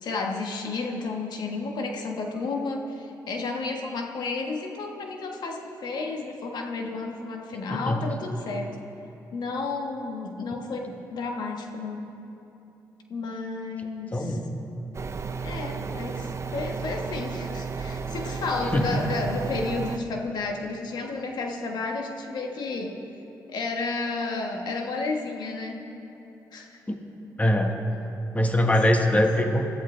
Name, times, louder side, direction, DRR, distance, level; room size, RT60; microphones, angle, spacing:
voice 1, 0.0-8.7 9.3-12.1 13.1-14.4 15.4-23.0 23.5-25.9 26.5-26.8, left 3 dB, 70° left, 2 dB, 1.5 m, -32 dB
sound 1, 14.9-20.0, right 5 dB, 40° right, 0.8 m, -33 dB
voice 2, 27.4-27.8 28.3-29.7, left 1 dB, 20° left, 3 dB, 1.6 m, -22 dB
20.5 x 14.5 x 3.5 m, 2.9 s
supercardioid pair, 60°, 7 cm